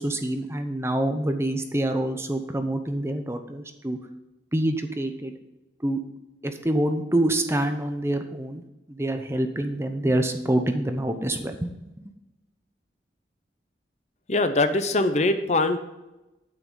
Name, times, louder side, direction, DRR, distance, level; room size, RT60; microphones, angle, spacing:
voice 1, 0.0-4.0 4.5-5.3 5.8-6.0 6.4-8.6 8.9-11.7, right 1 dB, 15° right, 6 dB, 0.8 m, -26 dB
voice 2, 14.3-15.8, left 2 dB, 40° left, 10 dB, 0.7 m, -22 dB
8.8 x 8.7 x 3.9 m, 0.99 s
head